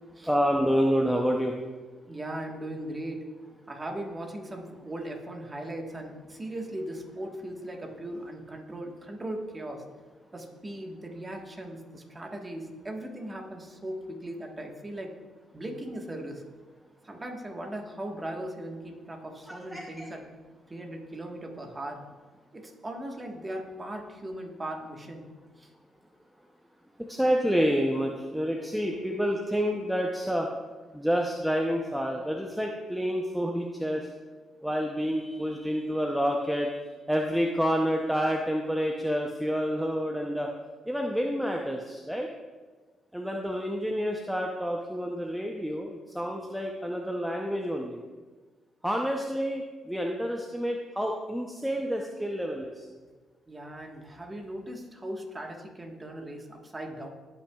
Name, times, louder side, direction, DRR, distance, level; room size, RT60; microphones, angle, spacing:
voice 1, 0.2-1.6 19.5-20.1 27.0-30.5 30.9-34.1 34.6-36.8 37.1-40.5 40.9-42.3 43.1-48.0 48.8-52.9, equal, 5° right, 1 dB, 0.7 m, -28 dB
voice 2, 2.1-3.3 3.7-9.8 10.3-15.1 15.5-16.4 17.0-20.2 20.7-22.0 22.5-25.3 25.6-25.7 53.5-57.1, right 1 dB, 20° right, 2 dB, 1.4 m, -38 dB
17.0 x 5.8 x 2.3 m, 1.4 s
cardioid pair, 90°, 0 cm